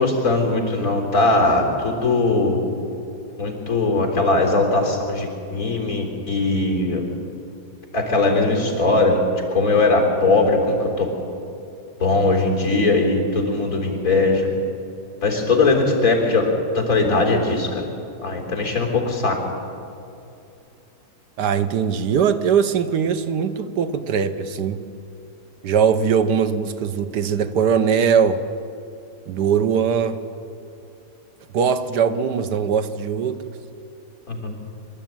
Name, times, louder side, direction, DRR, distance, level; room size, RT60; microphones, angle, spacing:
voice 1, 0.0-2.6 3.4-7.0 7.9-9.2 9.5-11.1 12.0-14.5 15.2-16.5 16.7-17.8 18.2-19.4 34.3-34.5, left 3 dB, 55° left, 0 dB, 4.1 m, -20 dB
voice 2, 21.4-24.8 25.6-28.4 29.3-30.2 31.5-33.4, right 7 dB, 90° right, 10 dB, 1.5 m, -20 dB
24.5 x 13.0 x 9.0 m, 2.6 s
omnidirectional pair, 1.7 m